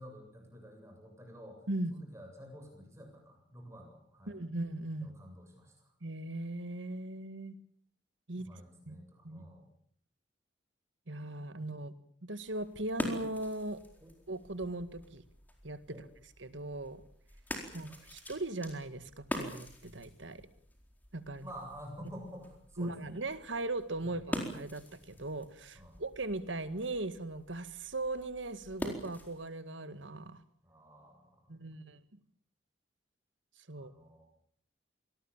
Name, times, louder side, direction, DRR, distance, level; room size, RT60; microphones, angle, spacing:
voice 1, 0.0-1.6 1.9-4.4 5.0-5.9 8.3-9.7 14.0-14.1 15.9-16.1 17.8-18.0 21.4-23.1 24.0-24.2 25.7-26.0 30.6-31.6 33.8-34.2, equal, 15° right, 2 dB, 7.9 m, -50 dB
voice 2, 4.3-5.1 6.0-7.5 8.3-8.5 8.9-9.0 9.2-9.4 11.1-11.9 12.2-13.8 14.3-15.2 15.6-16.0 16.4-17.0 17.7-20.4 21.1-21.5 22.8-30.4 31.5-32.0 33.7-33.9, right 2 dB, 85° right, 12 dB, 1.9 m, -38 dB
sound 1, 12.4-29.5, equal, 10° left, 4.4 m, -45 dB
26.0 x 19.5 x 7.4 m, 0.63 s
head